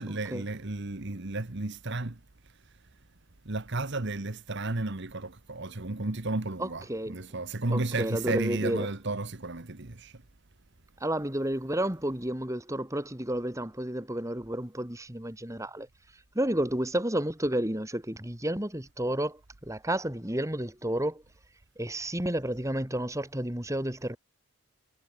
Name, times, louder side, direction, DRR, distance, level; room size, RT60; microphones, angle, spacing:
voice 1, 0.0-2.2 3.4-10.1, right 2 dB, 50° right, 1.3 m, -33 dB
voice 2, 6.6-7.2 7.7-8.9 11.0-15.9 16.4-19.4 19.7-21.2 21.8-24.2, right 1 dB, 15° right, 2.1 m, -31 dB
head